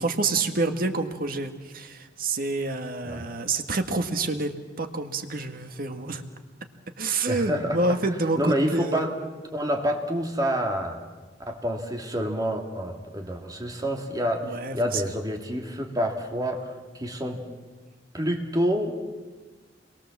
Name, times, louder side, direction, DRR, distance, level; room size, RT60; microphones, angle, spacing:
voice 1, 0.0-6.2 7.0-9.1 14.4-15.0, right 3 dB, 55° right, 6 dB, 1.7 m, -28 dB
voice 2, 7.3-7.8 8.4-9.1 9.5-11.0 11.4-17.4 18.1-19.0, equal, 20° right, 2 dB, 2.7 m, -28 dB
29.0 x 22.5 x 7.5 m, 1.3 s
head